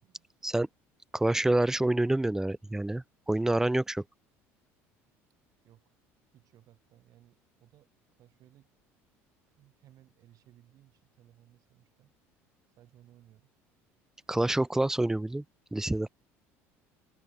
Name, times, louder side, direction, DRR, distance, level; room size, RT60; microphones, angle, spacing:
voice 1, 1.1-4.0 14.3-15.4 15.7-16.1, right 1 dB, 5° right, 0.3 m, -27 dB
voice 2, 5.6-6.0 6.3-8.7 9.5-12.1 12.8-13.5, right 13 dB, 55° right, 7.8 m, -61 dB
supercardioid pair, 85°, 7 cm